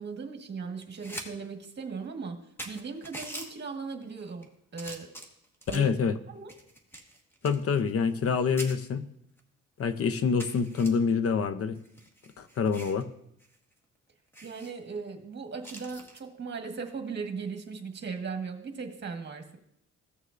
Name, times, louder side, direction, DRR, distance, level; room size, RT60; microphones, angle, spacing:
voice 1, 0.0-2.4 2.6-5.1 5.7-5.9 6.3-6.5 14.4-19.6, right 5 dB, 35° right, 5 dB, 1.5 m, -38 dB
sound 1, 0.8-1.3 1.6-1.7 2.3-2.4 2.6-3.5 4.2-4.4 4.8-5.9 6.5-8.3 8.6-8.7 9.4-9.5 9.8-9.9 10.4-10.9 11.7-13.0 13.4-13.6 13.8-13.9 14.3-14.7 15.6-16.2 17.9-18.2, right 1 dB, 10° left, 1.4 m, -43 dB
voice 2, 5.7-6.1 7.4-9.1 9.8-11.8 12.4-13.0, left 5 dB, 50° left, 11 dB, 0.7 m, -26 dB
15.5 x 6.5 x 2.6 m, 0.74 s
cardioid pair, 90°, 30 cm